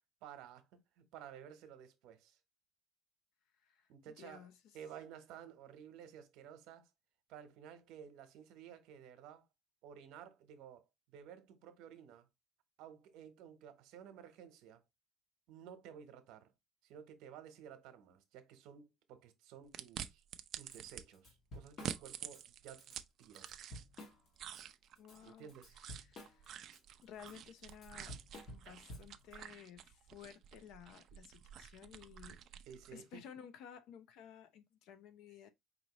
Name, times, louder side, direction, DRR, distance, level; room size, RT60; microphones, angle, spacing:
voice 1, 0.2-2.4 3.9-4.5 4.7-6.9 7.3-9.4 9.8-12.3 12.8-14.8 15.5-16.5 16.8-20.2 20.6-23.5 25.2-25.8 32.7-33.2, right 8 dB, 80° right, 1.0 m, -54 dB
voice 2, 3.6-4.8 25.0-25.5 25.8-26.6 27.0-28.2 28.4-32.4 32.9-35.5, left 8 dB, 70° left, 0.7 m, -55 dB
sound 1, 19.7-21.0 21.7-24.0 24.4-33.0, right 9 dB, 50° right, 0.4 m, -49 dB
Drum kit / Drum, 20.7-20.8 21.1-22.4 22.8-23.0 23.3-24.6 25.0-29.3, left 1 dB, 40° left, 1.4 m, -52 dB
5.1 x 3.0 x 3.0 m
cardioid pair, 145°, 0 cm